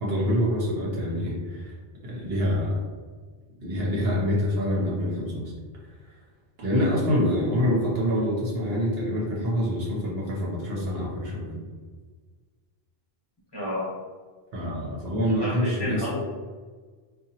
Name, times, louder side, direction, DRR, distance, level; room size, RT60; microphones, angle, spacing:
voice 1, 0.0-1.7 2.0-2.8 3.6-5.5 6.6-11.6 14.5-16.1, equal, 70° right, -4 dB, 0.9 m, -26 dB
voice 2, 13.5-13.9 15.4-16.2, left 1 dB, 25° left, -6 dB, 0.8 m, -31 dB
2.8 x 2.3 x 2.7 m, 1.5 s
omnidirectional pair, 1.1 m